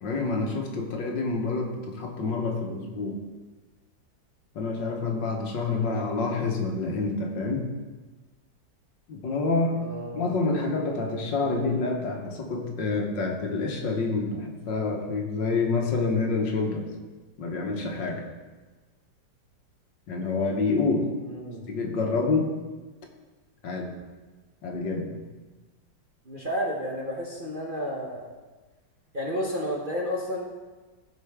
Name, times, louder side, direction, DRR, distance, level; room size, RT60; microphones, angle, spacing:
voice 1, 0.0-3.2 4.6-7.7 9.1-9.8 10.1-16.9 17.4-18.2 20.1-21.1 21.7-22.6 23.6-23.9 24.6-25.2, left 3 dB, 75° left, 2 dB, 1.8 m, -27 dB
voice 2, 9.8-10.4 21.2-21.7 26.3-28.3 29.1-30.5, equal, 35° right, -2 dB, 1.0 m, -32 dB
16.0 x 5.3 x 3.5 m, 1.3 s
omnidirectional pair, 2.0 m